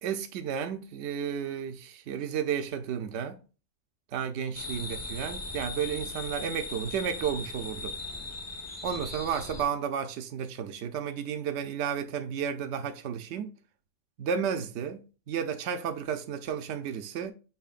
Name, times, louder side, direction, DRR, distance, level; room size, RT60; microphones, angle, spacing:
voice 1, 0.0-3.4 4.1-8.0 8.8-13.6 14.2-17.3, right 7 dB, 75° right, 0.9 m, -32 dB
sound 1, 4.5-9.6, left 3 dB, 15° left, 0.7 m, -38 dB
6.9 x 3.1 x 2.4 m
omnidirectional pair, 1.2 m